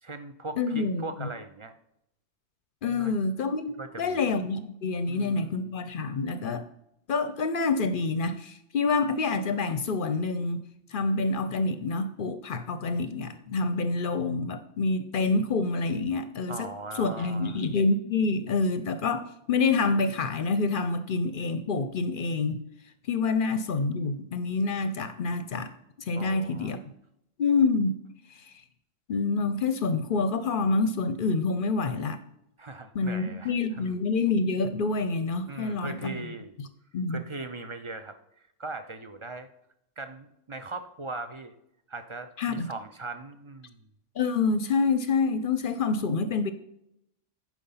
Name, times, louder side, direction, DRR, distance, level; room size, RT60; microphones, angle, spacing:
voice 1, 0.0-1.7 2.9-3.1 3.8-4.2 5.1-5.7 16.5-17.6 26.2-26.8 32.6-34.0 35.5-36.5 37.1-39.5 40.0-41.5 41.9-43.9, right 3 dB, 40° right, 0.4 m, -40 dB
voice 2, 0.6-1.3 2.8-3.7 4.0-6.6 7.1-10.6 10.9-16.7 17.0-22.6 23.1-25.7 26.1-26.8 27.4-28.0 29.1-32.2 32.9-36.2 36.6-36.7 36.9-37.2 42.4-42.7 44.2-46.5, left 4 dB, 55° left, 0.7 m, -27 dB
10.5 x 4.9 x 5.6 m
omnidirectional pair, 1.2 m